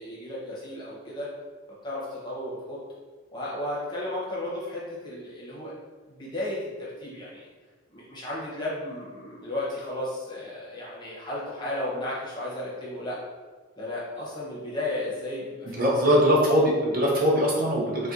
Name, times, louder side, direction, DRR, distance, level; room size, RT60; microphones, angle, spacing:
voice 1, 0.0-1.3 1.8-2.8 3.3-5.7 6.1-7.4 7.9-13.2 13.8-16.0, left 1 dB, 20° left, -7 dB, 0.7 m, -34 dB
voice 2, 15.7-18.1, equal, 40° right, -4 dB, 0.5 m, -21 dB
4.0 x 2.2 x 2.4 m, 1.4 s
head